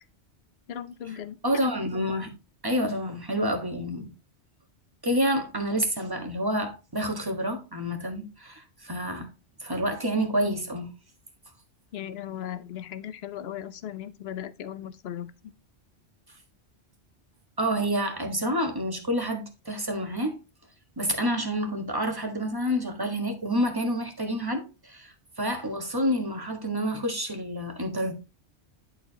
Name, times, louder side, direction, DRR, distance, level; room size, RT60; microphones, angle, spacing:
voice 1, 0.7-1.6 11.9-15.3, left 10 dB, 65° left, 0.9 m, -37 dB
voice 2, 1.4-2.3 2.6-4.1 5.0-9.3 9.6-10.9 17.6-20.4 21.0-28.1, equal, 20° right, 1.4 m, -28 dB
11.0 x 4.6 x 2.8 m
omnidirectional pair, 1.1 m